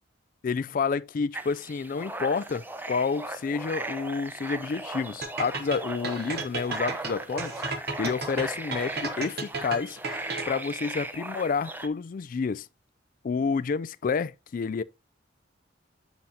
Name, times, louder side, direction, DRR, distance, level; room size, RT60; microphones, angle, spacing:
voice 1, 0.4-7.6 8.0-10.0 10.5-12.7 13.2-14.8, left 5 dB, 45° left, 0.3 m, -29 dB
Pond Soundscape (Frogs and Birds), 1.3-11.9, right 2 dB, 10° right, 0.5 m, -37 dB
sound 1, 5.2-10.7, right 4 dB, 50° right, 1.1 m, -34 dB
7.6 x 7.1 x 2.7 m
head